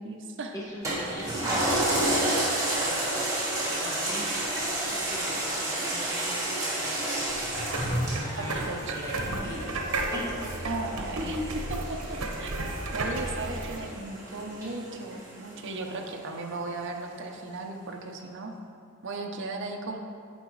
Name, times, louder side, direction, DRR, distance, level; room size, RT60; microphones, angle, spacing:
voice 1, 0.0-0.5 8.4-8.9 9.2-9.5 10.6-12.5 12.9-18.5 19.0-20.0, right 3 dB, 60° right, 2 dB, 0.6 m, -36 dB
voice 2, 0.5-1.5 1.9-3.0 3.7-7.2 8.1-10.7, equal, 15° left, -7 dB, 1.2 m, -41 dB
Toilet flush, 0.8-15.7 16.1-16.2, right 1 dB, 15° right, 1.5 m, -31 dB
sound 1, 7.3-13.8, right 2 dB, 90° right, 0.8 m, -33 dB
9.2 x 5.9 x 3.1 m, 2.5 s
head